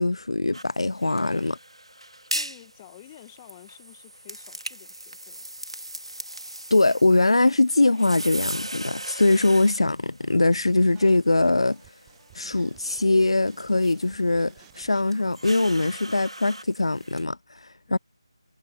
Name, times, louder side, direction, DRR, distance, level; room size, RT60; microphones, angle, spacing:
voice 1, 0.0-1.6 6.7-11.8 12.3-18.0, left 2 dB, 75° left, 0.3 m, -22 dB
sound 1, 0.5-17.2, right 1 dB, 85° right, 2.6 m, -39 dB
voice 2, 2.3-5.5 17.9-18.0, left 14 dB, 20° left, 2.1 m, -50 dB
sound 2, 10.9-16.1, right 34 dB, 10° right, 1.0 m, -56 dB
figure-of-eight pair, 160°, 3 cm